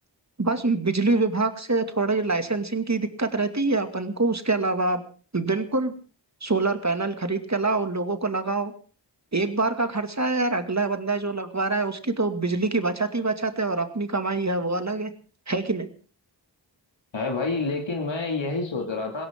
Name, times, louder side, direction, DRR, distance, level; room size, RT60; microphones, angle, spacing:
voice 1, 0.4-5.0 5.3-5.9 6.4-8.7 9.3-15.1 15.5-15.9, right 3 dB, 40° right, 8 dB, 2.3 m, -25 dB
voice 2, 17.1-19.3, left 3 dB, 85° left, 2 dB, 2.5 m, -28 dB
21.0 x 17.0 x 3.8 m, 0.39 s
wide cardioid pair, 50°, 44 cm